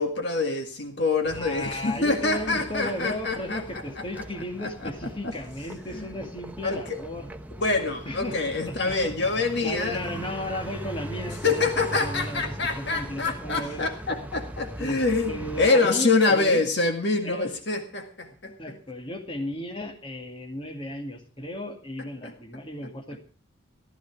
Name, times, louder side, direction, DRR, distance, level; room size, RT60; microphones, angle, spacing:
voice 1, 0.0-3.6 4.2-4.3 4.6-4.9 5.9-6.1 6.6-7.0 7.6-10.0 11.4-18.5 22.2-22.3, left 3 dB, 55° left, 5 dB, 1.9 m, -25 dB
sound 1, 1.2-15.7, right 1 dB, 10° right, 0.8 m, -40 dB
voice 2, 1.3-7.3 8.0-8.4 8.7-9.3 9.6-13.9 14.8-16.6 17.2-17.5 18.6-23.2, left 1 dB, 25° left, 2 dB, 2.2 m, -35 dB
15.0 x 13.5 x 4.7 m, 0.38 s
head